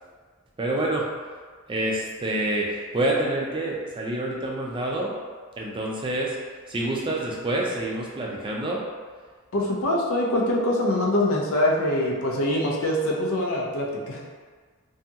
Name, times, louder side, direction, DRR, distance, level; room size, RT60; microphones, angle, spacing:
voice 1, 0.6-1.1 1.7-5.1 5.6-6.4 6.7-8.8, right 1 dB, 25° right, -3 dB, 0.4 m, -27 dB
voice 2, 9.5-14.2, left 1 dB, 70° left, -1 dB, 0.5 m, -24 dB
2.7 x 2.7 x 2.3 m, 1.5 s
head